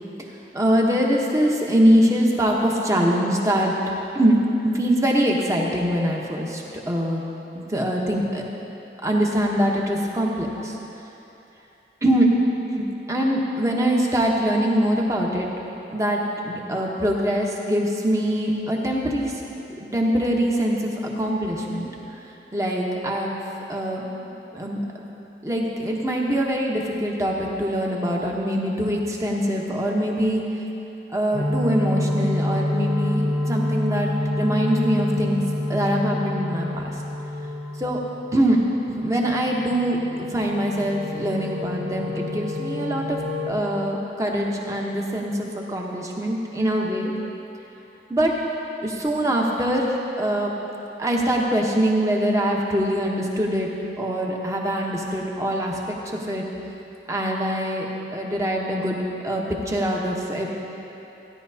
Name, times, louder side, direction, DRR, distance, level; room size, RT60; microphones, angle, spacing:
voice 1, 0.5-3.7 4.1-4.4 4.6-7.2 7.5-8.4 9.0-10.8 12.0-12.3 12.7-15.5 15.9-19.5 19.8-21.9 22.5-23.4 23.7-24.0 24.5-24.8 25.4-30.4 31.1-35.4 35.7-36.9 37.8-38.0 38.3-38.6 38.9-43.2 43.5-47.1 48.1-48.4 48.8-50.5 51.0-53.7 54.0-56.4 57.1-57.9 58.1-59.0 59.2-60.5, equal, 15° right, -1 dB, 0.9 m, -23 dB
sound 1, 31.3-38.5 38.7-43.5, left 1 dB, 80° right, 1.9 m, -28 dB
15.5 x 10.5 x 2.8 m, 3.0 s
head